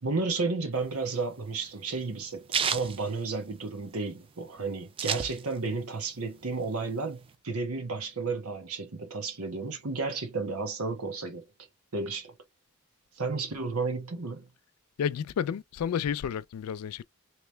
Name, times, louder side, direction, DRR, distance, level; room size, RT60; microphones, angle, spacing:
voice 1, 0.0-11.4 11.9-12.3 13.2-14.5, right 3 dB, 85° right, 1.1 m, -32 dB
sound 1, 0.8-3.9 4.3-4.4 4.5-5.8 6.2-7.3, right 7 dB, 25° right, 0.3 m, -32 dB
voice 2, 15.0-17.0, left 8 dB, 85° left, 0.3 m, -31 dB
3.3 x 2.9 x 3.2 m
head